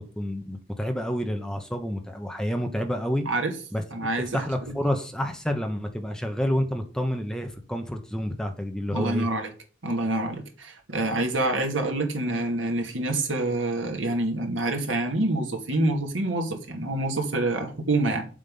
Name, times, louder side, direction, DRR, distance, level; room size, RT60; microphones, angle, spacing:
voice 1, 0.0-3.2 3.7-3.8 4.3-9.3, equal, 5° left, 5 dB, 1.1 m, -29 dB
voice 2, 3.9-4.7 8.9-9.5 9.8-18.2, right 2 dB, 85° right, 3 dB, 2.5 m, -27 dB
9.6 x 7.4 x 5.5 m, 0.39 s
head